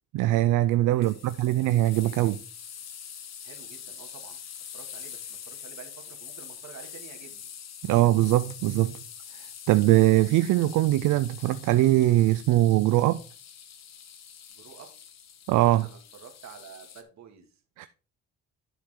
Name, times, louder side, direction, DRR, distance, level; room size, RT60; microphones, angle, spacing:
voice 1, 0.1-2.4 7.8-9.0 9.7-13.2 15.5-15.9 17.8-17.9, right 15 dB, 85° right, 0.5 m, -22 dB
voice 2, 0.9-1.6 2.0-2.4 3.4-4.4 4.7-7.5 14.5-14.9 15.6-17.6, right 7 dB, 65° right, 2.3 m, -49 dB
sound 1, 1.0-17.0, left 8 dB, 60° left, 1.2 m, -44 dB
11.5 x 4.7 x 3.7 m
cardioid pair, 90°, 30 cm